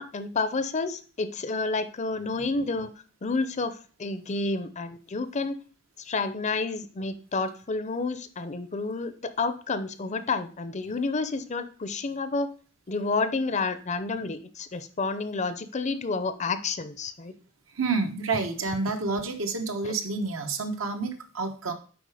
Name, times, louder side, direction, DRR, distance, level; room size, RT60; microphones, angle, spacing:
voice 1, 0.0-2.9 3.2-5.6 6.0-9.1 9.4-12.5 12.9-17.3 19.8-19.9, left 3 dB, 35° left, 12 dB, 0.6 m, -30 dB
voice 2, 17.7-21.7, right 3 dB, 70° right, 6 dB, 1.1 m, -29 dB
7.8 x 4.9 x 4.9 m, 0.39 s
head